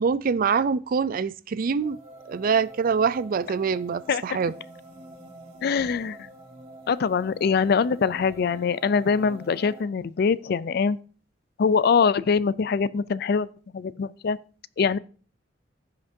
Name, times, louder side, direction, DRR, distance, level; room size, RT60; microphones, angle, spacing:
voice 1, 0.0-2.0 2.3-4.5, right 6 dB, 50° right, 0.4 m, -24 dB
sound 1, 1.8-9.8, right 1 dB, 35° right, 2.3 m, -46 dB
voice 2, 5.6-6.3 6.9-11.0 11.6-13.5 13.7-14.4 14.8-15.0, left 5 dB, 60° left, 0.4 m, -23 dB
15.5 x 5.9 x 2.7 m
head